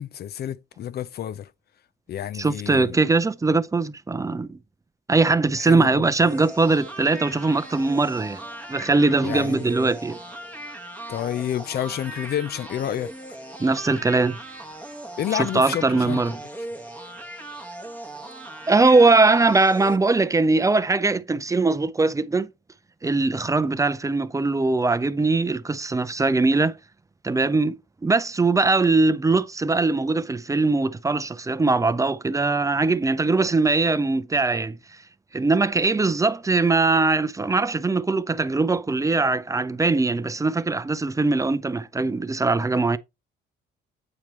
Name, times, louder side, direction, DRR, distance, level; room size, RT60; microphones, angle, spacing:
voice 1, 0.0-1.5 2.1-3.0 5.6-6.1 9.2-9.7 11.1-13.1 15.2-16.4, left 10 dB, 55° left, 0.4 m, -29 dB
voice 2, 2.3-4.6 5.1-8.4 8.7-10.2 13.6-14.4 15.3-16.4 18.7-22.5 23.0-26.7 27.2-27.8 28.0-34.8 35.3-43.0, right 3 dB, 15° right, 0.5 m, -21 dB
sound 1, 6.2-20.0, right 1 dB, 5° left, 1.1 m, -38 dB
8.6 x 4.5 x 3.1 m
cardioid pair, 90°, 20 cm